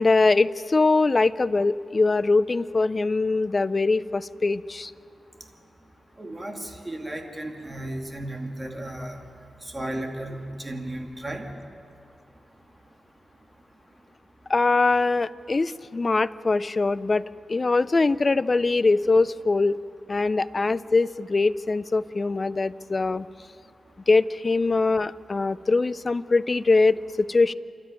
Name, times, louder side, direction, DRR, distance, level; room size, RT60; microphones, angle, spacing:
voice 1, 0.0-4.9 14.5-19.8 20.1-23.3 24.1-27.5, left 3 dB, 35° left, 16 dB, 0.5 m, -22 dB
voice 2, 6.2-9.2 9.6-11.5, right 1 dB, 20° right, 3 dB, 2.4 m, -34 dB
28.0 x 12.5 x 9.1 m, 2.6 s
cardioid pair, 85°, 0 cm